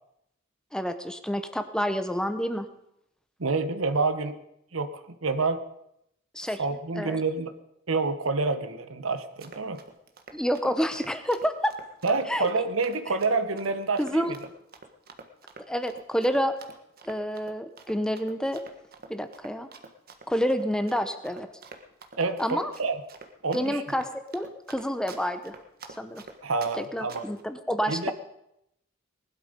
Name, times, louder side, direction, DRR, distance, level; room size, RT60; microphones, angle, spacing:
voice 1, 0.7-2.7 6.3-6.6 7.0-7.2 10.3-11.7 12.3-12.5 14.0-14.3 15.7-16.6 17.0-18.6 19.1-19.7 20.3-21.5 22.4-22.7 23.5-25.6 26.0-26.3 26.8-28.1, equal, 5° left, 9 dB, 0.9 m, -28 dB
voice 2, 3.4-4.3 4.7-4.9 5.2-5.6 6.6-7.6 7.9-9.8 12.0-14.3 22.2-23.0 23.4-23.8 26.4-27.2 27.9-28.1, right 4 dB, 85° right, 10 dB, 1.2 m, -27 dB
Run, 9.2-26.8 27.1-27.4, right 4 dB, 45° right, 1.5 m, -47 dB
19.5 x 12.0 x 5.2 m, 0.80 s
head